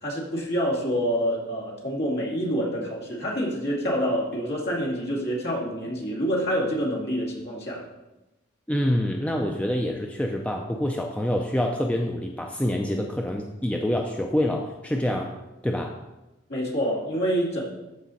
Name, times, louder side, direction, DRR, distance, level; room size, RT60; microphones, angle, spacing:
voice 1, 0.0-7.9 16.5-17.6, equal, 55° left, -3 dB, 2.5 m, -27 dB
voice 2, 8.7-15.3 15.6-15.9, left 1 dB, 5° left, 1 dB, 0.5 m, -26 dB
13.5 x 4.9 x 4.2 m, 1.0 s
head